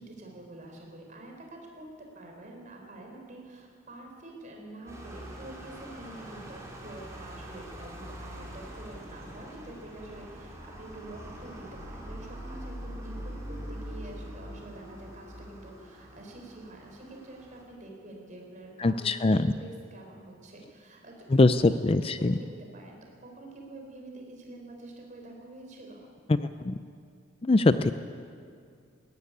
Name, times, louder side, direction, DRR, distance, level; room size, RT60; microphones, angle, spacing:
voice 1, 0.0-26.1, right 2 dB, 40° right, 1 dB, 4.6 m, -47 dB
sound 1, 4.9-17.6, equal, 15° right, 4.1 m, -43 dB
voice 2, 18.8-19.5 21.3-22.3 26.3-26.7 27.4-27.9, left 2 dB, 30° left, 11 dB, 0.4 m, -22 dB
21.0 x 14.0 x 9.8 m, 2.3 s
head